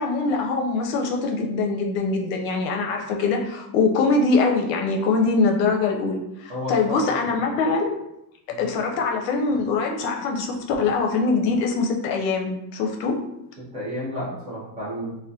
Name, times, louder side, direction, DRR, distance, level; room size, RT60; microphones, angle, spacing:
voice 1, 0.0-8.0 8.6-13.2, left 4 dB, 80° left, 2 dB, 0.6 m, -23 dB
voice 2, 6.5-7.0 8.5-8.7 13.6-15.2, equal, 15° right, -7 dB, 0.5 m, -31 dB
3.5 x 2.2 x 2.6 m, 0.83 s
cardioid pair, 175°, 47 cm